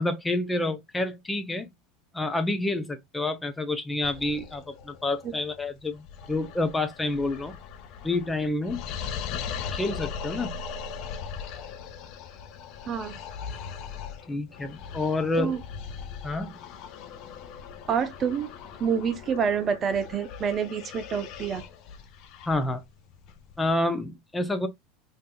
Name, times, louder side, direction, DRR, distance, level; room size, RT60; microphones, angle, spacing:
voice 1, 0.0-1.7 2.1-7.5 8.0-8.8 9.7-10.5 14.3-15.6 16.2-16.6 22.5-22.8 23.6-24.7, left 2 dB, 15° left, 0.6 m, -28 dB
sound 1, 4.0-23.7, left 7 dB, 55° left, 0.6 m, -40 dB
voice 2, 12.9-13.2 15.4-15.6 17.9-18.5 18.8-21.6, right 7 dB, 35° right, 0.7 m, -27 dB
3.4 x 2.8 x 2.3 m
hypercardioid pair, 90°, 0 cm